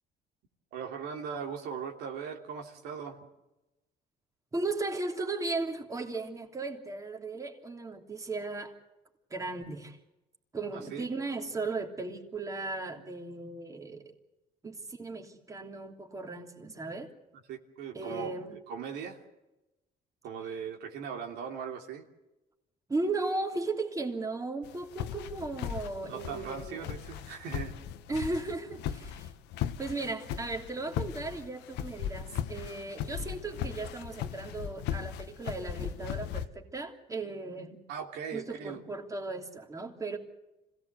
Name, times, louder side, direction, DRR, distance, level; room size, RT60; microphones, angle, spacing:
voice 1, 0.7-3.2 10.7-11.1 17.5-18.3 18.7-19.2 20.2-22.0 26.0-27.7 37.9-38.8, right 7 dB, 85° right, 3 dB, 3.1 m, -39 dB
voice 2, 4.5-8.7 9.3-10.0 10.5-14.1 14.6-17.1 17.9-18.5 22.9-26.9 28.1-29.3 29.8-37.8 38.3-40.2, right 3 dB, 20° right, 3 dB, 3.0 m, -36 dB
sound 1, 24.6-36.5, left 9 dB, 85° left, 1.2 m, -38 dB
26.0 x 17.5 x 8.1 m, 0.97 s
cardioid pair, 110°, 17 cm